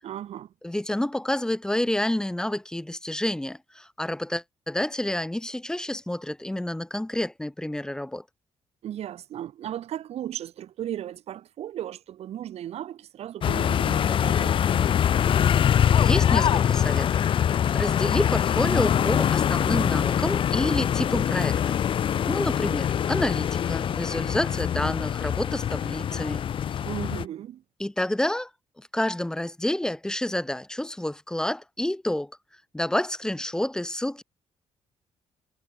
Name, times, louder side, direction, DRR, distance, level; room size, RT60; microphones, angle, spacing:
voice 1, 0.0-0.5 8.8-14.8 26.8-27.6, right 11 dB, 65° right, 7.8 m, -36 dB
voice 2, 0.6-8.2 16.0-17.1 17.7-21.8 22.3-26.4 27.8-28.5 28.8-32.3 32.7-34.2, left 1 dB, 5° left, 1.8 m, -29 dB
sound 1, 13.4-27.2, left 9 dB, 50° left, 1.4 m, -23 dB
cardioid pair, 150°, 11 cm